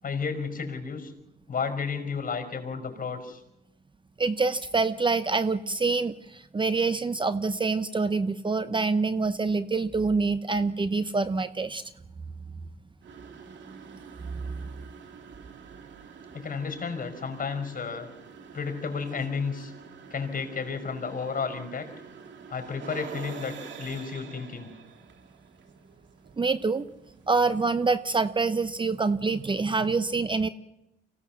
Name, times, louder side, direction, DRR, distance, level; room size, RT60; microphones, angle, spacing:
voice 1, 0.0-1.1 1.5-3.4 16.3-18.1 18.5-19.7 20.1-21.9 22.5-24.7, left 5 dB, 45° left, 6 dB, 5.1 m, -32 dB
voice 2, 4.2-11.8 14.3-14.4 26.4-26.9 27.3-30.5, right 4 dB, 25° right, 12 dB, 0.8 m, -26 dB
sound 1, 13.0-27.9, right 6 dB, 65° right, 2.2 m, -47 dB
25.0 x 17.0 x 7.3 m, 0.88 s
cardioid pair, 90°, 20 cm